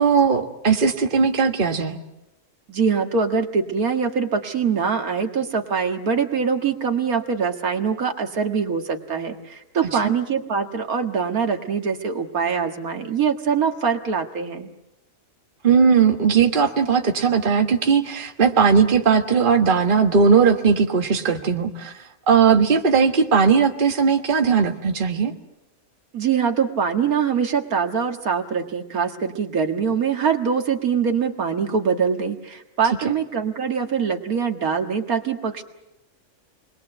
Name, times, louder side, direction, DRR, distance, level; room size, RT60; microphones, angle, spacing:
voice 1, 0.0-2.0 15.6-21.9 22.3-25.3, right 6 dB, 35° right, 4 dB, 1.6 m, -18 dB
voice 2, 2.7-14.7 26.1-35.6, right 6 dB, 80° right, 4 dB, 2.2 m, -23 dB
28.0 x 21.5 x 7.9 m, 0.91 s
omnidirectional pair, 1.5 m